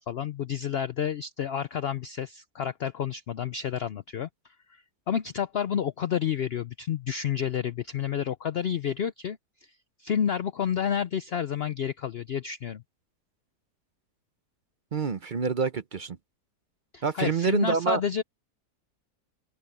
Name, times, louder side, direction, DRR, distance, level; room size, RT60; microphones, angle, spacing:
voice 1, 0.0-4.3 4.7-9.7 10.0-12.8 16.9-18.2, left 8 dB, 85° left, 0.5 m, -30 dB
voice 2, 14.9-16.2 17.0-18.0, right 6 dB, 50° right, 0.6 m, -27 dB
open air
omnidirectional pair, 1.7 m